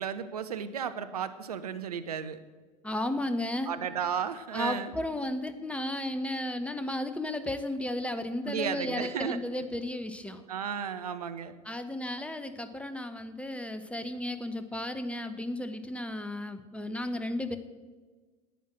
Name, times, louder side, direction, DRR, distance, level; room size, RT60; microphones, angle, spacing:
voice 1, 0.0-2.4 3.6-4.9 8.4-9.4 10.5-11.5, right 7 dB, 70° right, 11 dB, 0.8 m, -34 dB
voice 2, 2.8-3.7 4.5-10.5 11.6-17.6, left 1 dB, 5° left, 10 dB, 1.0 m, -34 dB
11.0 x 9.3 x 8.9 m, 1.4 s
figure-of-eight pair, 70°, 20 cm